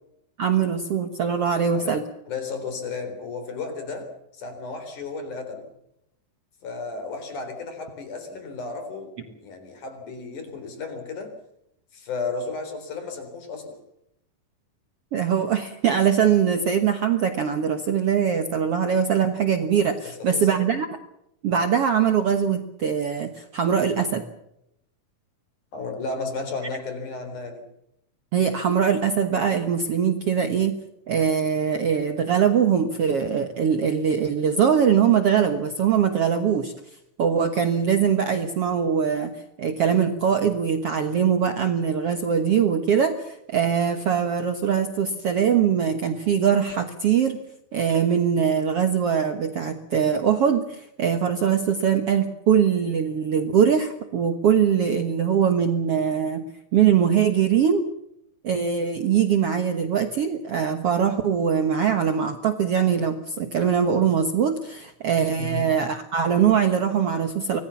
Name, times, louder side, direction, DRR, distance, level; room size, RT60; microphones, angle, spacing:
voice 1, 0.4-2.0 15.1-20.9 21.4-24.3 28.3-30.8 31.1-36.7 37.2-47.4 47.7-56.5 56.7-57.9 58.4-67.6, right 7 dB, 55° right, 7 dB, 1.7 m, -22 dB
voice 2, 2.3-5.7 6.6-11.3 11.9-13.8 20.0-20.7 25.7-27.7 65.4-65.7, left 4 dB, 55° left, 7 dB, 5.4 m, -33 dB
25.0 x 19.0 x 7.2 m, 0.79 s
omnidirectional pair, 4.2 m